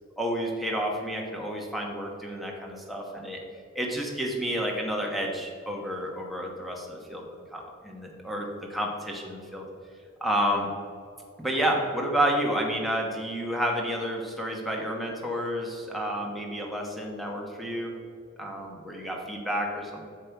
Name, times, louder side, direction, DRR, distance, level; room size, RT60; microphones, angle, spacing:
voice 1, 0.2-3.4 3.7-9.6 10.2-10.7 11.4-17.9 18.4-20.0, equal, ahead, -1 dB, 1.3 m, -30 dB
7.6 x 6.9 x 4.7 m, 2.3 s
head